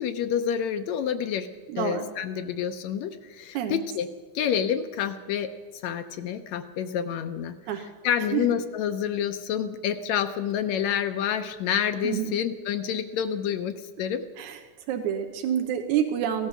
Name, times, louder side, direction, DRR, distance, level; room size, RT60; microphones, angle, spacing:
voice 1, 0.0-1.5 1.8-4.1 4.4-5.5 5.8-14.2, left 8 dB, 75° left, 9 dB, 2.0 m, -28 dB
voice 2, 1.7-2.1 3.5-3.8 7.7-7.9 8.3-8.4 12.0-12.3 14.4-14.6 14.9-16.5, right 9 dB, 80° right, 5 dB, 2.4 m, -27 dB
16.5 x 12.0 x 7.2 m, 1.4 s
omnidirectional pair, 3.4 m